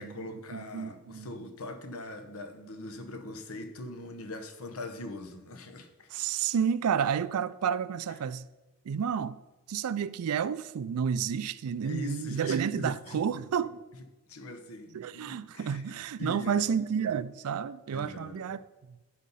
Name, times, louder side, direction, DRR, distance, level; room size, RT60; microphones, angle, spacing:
voice 1, 0.0-6.1 11.8-13.2 14.3-15.8 16.2-16.7 17.9-18.4, left 2 dB, 80° left, 1.0 m, -41 dB
voice 2, 0.5-1.3 6.1-8.5 8.9-9.4 9.7-13.8 14.9-18.6 18.9-19.0, right 7 dB, 85° right, 0.4 m, -30 dB
12.0 x 4.3 x 5.5 m
head